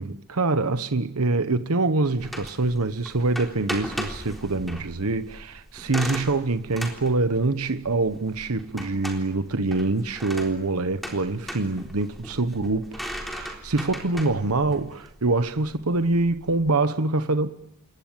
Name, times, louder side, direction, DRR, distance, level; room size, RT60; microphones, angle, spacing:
voice 1, 0.0-17.5, right 3 dB, 85° right, 1.1 m, -25 dB
sound 1, 2.2-16.7, equal, ahead, 3.7 m, -38 dB
28.0 x 22.0 x 9.1 m
head